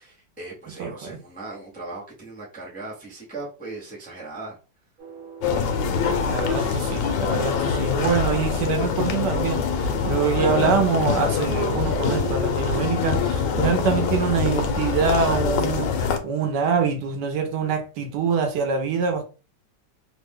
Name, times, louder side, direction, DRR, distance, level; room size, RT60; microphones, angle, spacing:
voice 1, 0.0-4.6, right 2 dB, 10° left, 0.5 m, -38 dB
voice 2, 0.8-1.2 6.2-19.2, right 6 dB, 70° right, 1.2 m, -25 dB
sound 1, 5.0-9.1 12.0-13.5 14.0-15.8, right 4 dB, 55° right, 0.5 m, -41 dB
sound 2, 5.4-16.2, left 6 dB, 80° left, 1.3 m, -24 dB
3.3 x 2.1 x 3.5 m
omnidirectional pair, 2.0 m